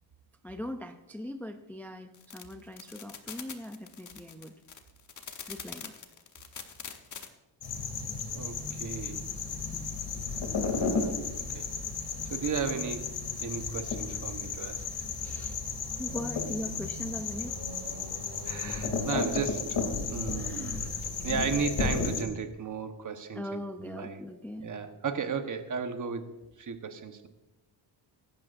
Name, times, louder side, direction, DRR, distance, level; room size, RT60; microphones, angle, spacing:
voice 1, 0.4-4.6 5.5-5.9 9.7-9.9 15.2-15.6 16.0-17.6 20.3-21.1 23.3-24.7, left 1 dB, 5° left, 6 dB, 0.4 m, -40 dB
sound 1, 2.1-7.3, left 6 dB, 40° left, 1.1 m, -43 dB
sound 2, 7.6-22.2, left 4 dB, 60° left, 2.8 m, -33 dB
voice 2, 8.3-9.2 11.5-11.7 12.3-13.1 13.4-14.8 18.4-19.8 20.1-20.9 21.2-24.2 24.6-26.3 26.6-27.3, right 5 dB, 40° right, 7 dB, 1.2 m, -34 dB
24.0 x 12.0 x 2.6 m, 1.1 s
wide cardioid pair, 160°, 47 cm